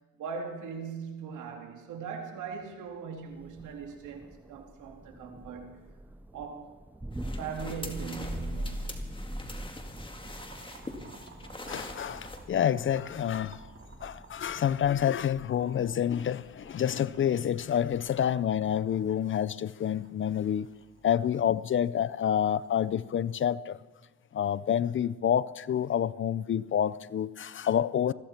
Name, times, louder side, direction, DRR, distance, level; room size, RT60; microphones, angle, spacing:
voice 1, 0.2-5.8 6.3-6.7 7.4-8.9, right 6 dB, 80° right, 2.6 m, -40 dB
Thunder, 3.3-19.1, right 1 dB, 5° right, 0.5 m, -43 dB
sound 1, 7.1-12.4, left 2 dB, 15° left, 2.1 m, -44 dB
Boiling, 10.2-23.5, right 4 dB, 40° right, 2.6 m, -56 dB
voice 2, 11.7-13.6 14.0-20.7 21.0-23.8 24.3-28.1, left 9 dB, 40° left, 0.5 m, -28 dB
21.0 x 14.5 x 4.4 m
cardioid pair, 90°, 30 cm